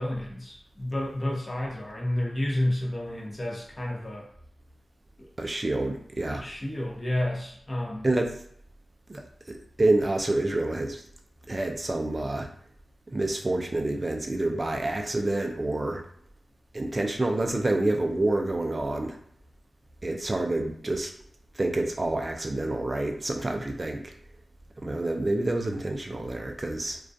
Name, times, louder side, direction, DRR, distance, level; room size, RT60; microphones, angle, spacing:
voice 1, 0.0-4.3 5.2-5.3 6.3-8.1, left 1 dB, 30° left, -2 dB, 0.7 m, -30 dB
voice 2, 5.4-6.5 8.0-8.4 9.1-11.0 11.5-12.5 13.1-16.0 16.7-19.2 20.0-21.1 21.5-24.1 24.8-27.0, right 2 dB, 35° right, 3 dB, 0.3 m, -28 dB
2.3 x 2.2 x 2.5 m, 0.66 s
wide cardioid pair, 70°, 0 cm